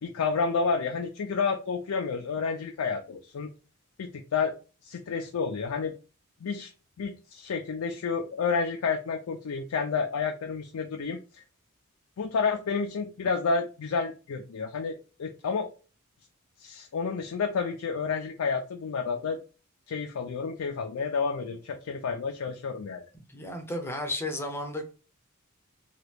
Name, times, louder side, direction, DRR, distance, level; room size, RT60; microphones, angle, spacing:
voice 1, 0.0-3.5 4.0-4.6 4.8-5.9 6.4-6.7 7.0-11.4 12.2-15.7 16.6-19.4 19.9-23.0, left 5 dB, 80° left, 0.4 m, -30 dB
voice 2, 23.1-24.8, left 1 dB, 10° left, 0.5 m, -33 dB
2.9 x 2.3 x 3.3 m
head